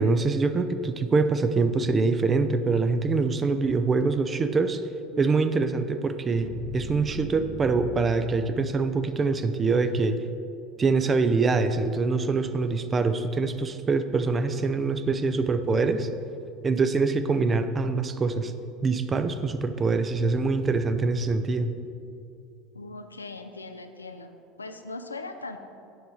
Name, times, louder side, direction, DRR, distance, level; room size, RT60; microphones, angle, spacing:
voice 1, 0.0-4.8 5.2-10.2 10.8-16.1 16.6-18.5 18.8-21.7, right 4 dB, 25° right, 10 dB, 0.5 m, -24 dB
sound 1, 5.1-9.2, right 3 dB, 65° right, 1.2 m, -41 dB
voice 2, 22.7-24.3 24.6-25.6, left 3 dB, 85° left, 7 dB, 0.4 m, -39 dB
7.9 x 5.4 x 4.6 m, 2.5 s
figure-of-eight pair, 70°, 0 cm